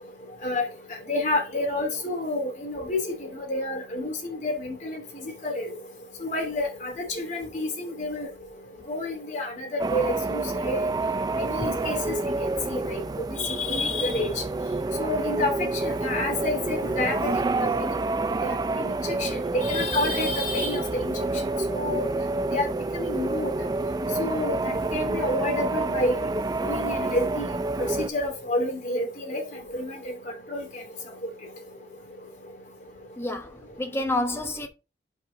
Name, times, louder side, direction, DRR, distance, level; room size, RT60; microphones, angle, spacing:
voice 1, 1.1-3.0 3.5-5.0 5.4-5.6 6.2-8.3 8.9-10.8 11.5-12.0 12.7-13.0 13.6-14.3 15.0-15.5 15.8-17.3 18.4-18.9 19.2-19.3 19.5-21.1 21.7-22.1 22.5-22.7 22.9-23.5 24.2-26.1 26.6-27.4 28.0-29.4 29.7-29.9 30.5-30.6, left 1 dB, 45° left, 2.8 m, -28 dB
sound 1, 9.8-28.1, right 2 dB, 25° right, 0.3 m, -28 dB
voice 2, 33.2-34.7, left 1 dB, 15° left, 1.1 m, -29 dB
5.5 x 4.8 x 4.9 m
head